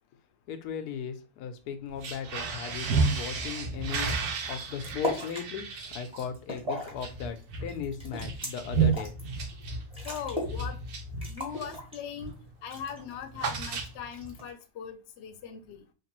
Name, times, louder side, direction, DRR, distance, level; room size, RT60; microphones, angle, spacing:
voice 1, 0.5-4.1 4.5-9.1, left 7 dB, 90° left, 1.1 m, -37 dB
sound 1, 1.9-11.8 12.2-12.5 12.7-14.3, right 4 dB, 80° right, 1.1 m, -32 dB
sound 2, 4.0-4.1 4.5-5.5 5.9-7.0 7.4-9.2 9.6-9.7 9.9-10.6 10.9-11.0 11.2-12.3 12.7-13.2 14.1-14.6, left 1 dB, 5° right, 0.9 m, -36 dB
voice 2, 10.0-10.8 11.3-12.3 12.6-15.8, left 8 dB, 60° left, 0.7 m, -40 dB
3.3 x 2.9 x 2.9 m
omnidirectional pair, 1.6 m